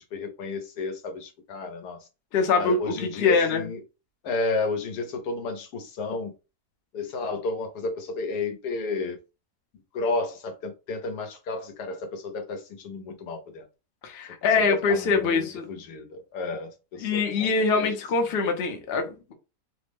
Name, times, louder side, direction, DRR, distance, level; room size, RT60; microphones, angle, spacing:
voice 1, 0.1-2.0 2.6-3.8 4.2-6.3 6.9-9.2 9.9-13.6 14.6-17.5 17.8-17.9, left 3 dB, 85° left, 1.3 m, -32 dB
voice 2, 2.3-3.7 14.0-15.7 17.0-19.3, left 4 dB, 50° left, 0.7 m, -24 dB
3.3 x 2.0 x 3.4 m
omnidirectional pair, 1.7 m